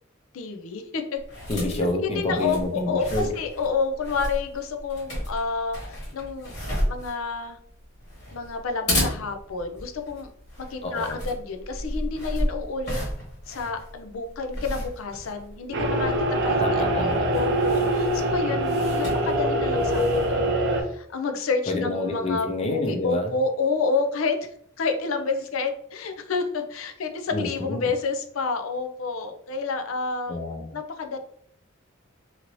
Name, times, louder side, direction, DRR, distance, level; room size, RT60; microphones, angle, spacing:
voice 1, 0.3-1.2 2.0-6.5 6.9-7.6 8.3-10.3 10.7-13.0 13.5-16.1 16.4-16.6 16.9-24.5 24.8-30.4 30.7-31.2, left 4 dB, 85° left, 6 dB, 0.5 m, -29 dB
sound 1, 1.2-20.5, equal, 55° left, 1.4 m, -34 dB
voice 2, 1.5-3.3 10.8-11.2 16.6-17.3 21.7-23.3 27.3-27.9 30.3-30.7, left 2 dB, 30° left, 2 dB, 0.5 m, -28 dB
sound 2, 15.7-20.8, right 1 dB, 55° right, 0.5 m, -24 dB
2.8 x 2.6 x 3.0 m, 0.65 s
head